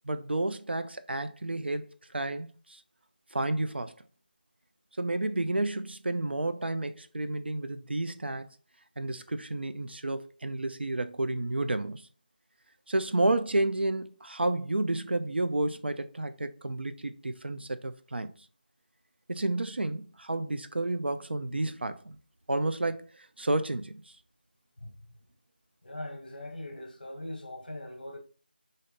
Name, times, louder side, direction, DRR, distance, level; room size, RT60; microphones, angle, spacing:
voice 1, 0.0-2.8 3.3-3.9 5.0-8.5 9.0-12.1 12.9-18.3 19.3-22.2 22.5-24.0, right 2 dB, 80° right, 0.5 m, -31 dB
voice 2, 25.8-28.2, left 1 dB, 55° left, 1.0 m, -41 dB
3.2 x 2.6 x 4.0 m
figure-of-eight pair, 180°, 6 cm